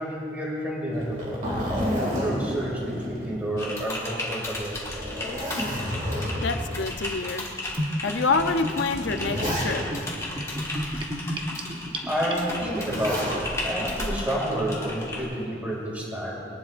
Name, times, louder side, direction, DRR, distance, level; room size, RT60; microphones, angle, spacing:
voice 1, 0.0-4.8 12.0-16.4, equal, 10° right, -4 dB, 2.4 m, -30 dB
Zipper (clothing), 0.9-3.9 4.2-4.3 4.9-6.7 7.5-7.6 8.6-10.1 12.6-13.5 14.8-15.3, equal, 45° right, 2.4 m, -30 dB
Typing, 3.6-15.2, left 1 dB, 15° left, 1.6 m, -35 dB
voice 2, 6.4-7.5 8.0-9.8, left 4 dB, 85° left, 7 dB, 0.6 m, -26 dB
Gurgling / Bathtub (filling or washing), 7.7-12.8, equal, 25° right, 0.9 m, -32 dB
20.5 x 11.5 x 2.5 m, 2.7 s
head